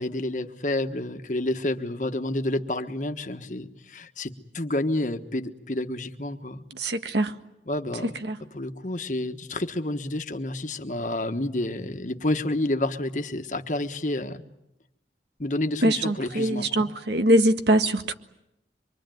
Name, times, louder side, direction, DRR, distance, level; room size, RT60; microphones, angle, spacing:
voice 1, 0.0-6.6 7.6-14.4 15.4-16.9, left 1 dB, 45° left, 7 dB, 1.4 m, -29 dB
voice 2, 6.8-7.3 15.8-18.1, right 1 dB, 80° right, 8 dB, 1.7 m, -22 dB
25.5 x 23.5 x 9.2 m, 0.87 s
head